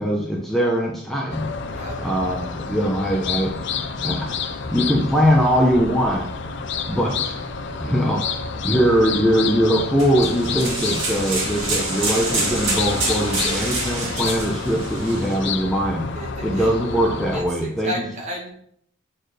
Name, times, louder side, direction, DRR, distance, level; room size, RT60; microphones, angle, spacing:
voice 1, 0.0-1.5 2.0-3.5 4.0-4.3 4.7-6.3 6.9-7.4 7.8-8.3 8.6-16.1 16.4-18.0, equal, ahead, -2 dB, 0.9 m, -21 dB
sound 1, 1.3-17.4, left 5 dB, 60° left, 0.7 m, -29 dB
sound 2, 10.0-15.4, right 3 dB, 60° right, 2.4 m, -27 dB
voice 2, 16.2-16.7 17.3-18.5, equal, 35° right, -2 dB, 2.2 m, -32 dB
8.2 x 4.5 x 5.0 m, 0.66 s
head